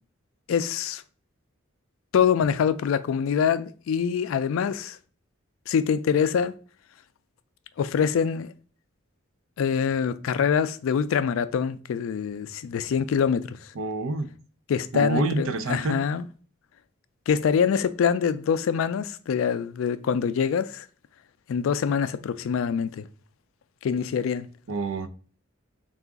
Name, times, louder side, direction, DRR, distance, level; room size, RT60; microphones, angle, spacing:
voice 1, 0.5-1.0 2.1-5.0 5.7-6.5 7.8-8.5 9.6-13.6 14.7-16.2 17.3-20.9 21.5-23.1 23.8-24.5, left 7 dB, 75° left, 0.3 m, -24 dB
voice 2, 13.8-14.3 14.9-16.0 24.7-25.1, right 3 dB, 75° right, 0.5 m, -27 dB
3.8 x 2.4 x 3.4 m
head